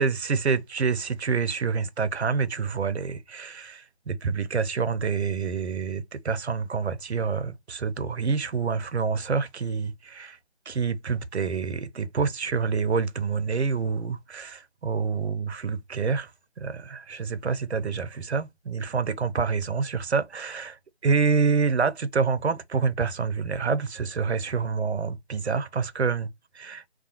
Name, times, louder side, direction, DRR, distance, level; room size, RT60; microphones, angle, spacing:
voice 1, 0.0-10.4 10.7-16.3 16.6-26.3 26.5-26.8, right 5 dB, 80° right, 0.5 m, -27 dB
2.4 x 2.2 x 2.7 m
figure-of-eight pair, 160°, 33 cm